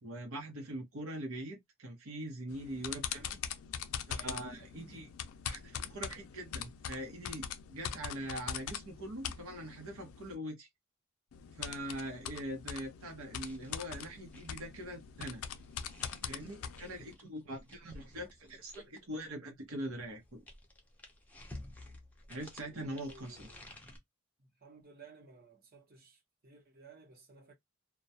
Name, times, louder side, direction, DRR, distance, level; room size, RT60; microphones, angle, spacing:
voice 1, 0.0-3.3 4.1-5.1 5.4-10.7 11.6-15.4 16.2-20.4 22.3-23.5, right 1 dB, 85° right, 0.8 m, -42 dB
sound 1, 2.5-10.4 11.3-17.2, left 8 dB, 90° left, 0.4 m, -43 dB
sound 2, 13.4-19.2 20.0-24.0, left 1 dB, 5° left, 0.5 m, -53 dB
voice 2, 22.6-23.8 24.4-27.5, right 4 dB, 45° right, 0.8 m, -57 dB
2.2 x 2.2 x 2.6 m
head